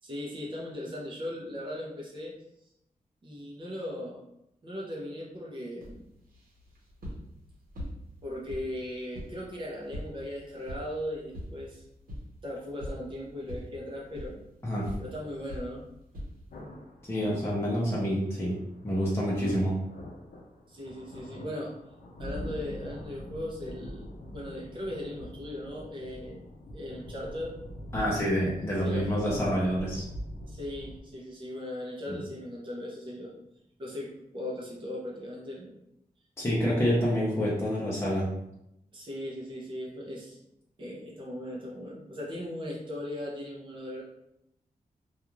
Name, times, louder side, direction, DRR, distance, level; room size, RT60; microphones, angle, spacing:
voice 1, 0.0-2.3 3.2-4.2 4.6-6.0 8.2-11.8 12.4-14.5 15.0-15.8 20.7-21.8 22.2-26.4 26.7-27.6 28.7-29.4 30.5-33.3 33.8-35.8 38.9-40.4 40.8-44.0, left 1 dB, 35° right, -4 dB, 0.6 m, -38 dB
sound 1, 5.8-16.6, equal, 75° right, 0.9 m, -44 dB
sound 2, 16.5-31.0, left 1 dB, 70° left, 0.5 m, -43 dB
voice 2, 17.1-18.6 18.8-19.7 27.9-30.1 36.4-38.3, equal, 20° left, -6 dB, 0.6 m, -27 dB
2.4 x 2.4 x 3.0 m, 0.82 s
wide cardioid pair, 120°, 15 cm